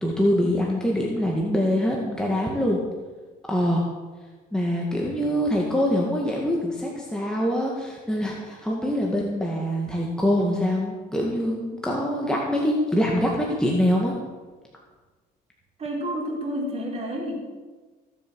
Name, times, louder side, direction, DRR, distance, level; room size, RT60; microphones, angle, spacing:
voice 1, 0.0-2.8 3.5-3.8 4.5-14.1, equal, 5° left, -2 dB, 2.1 m, -24 dB
voice 2, 15.8-17.3, equal, 40° right, -2 dB, 3.9 m, -29 dB
16.5 x 7.5 x 6.4 m, 1.3 s
cardioid pair, 110°, 17 cm